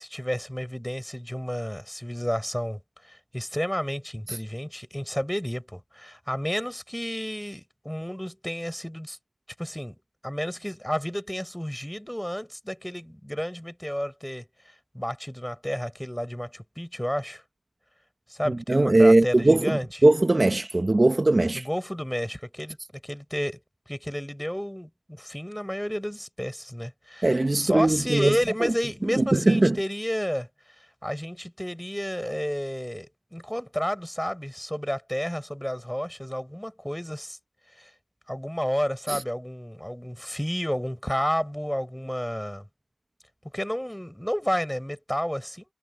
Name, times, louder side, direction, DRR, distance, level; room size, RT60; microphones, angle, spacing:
voice 1, 0.0-2.8 3.0-9.2 9.6-9.9 10.2-17.4 18.3-19.9 21.5-22.8 23.0-23.6 23.9-30.5 30.8-37.4 37.8-37.9 38.3-42.6 43.5-45.6, equal, 5° left, 6.2 m, -31 dB
voice 2, 18.5-21.7 27.2-28.7 29.2-29.8 39.1-39.2, right 2 dB, 40° right, 1.2 m, -20 dB
cardioid pair, 50°, 0 cm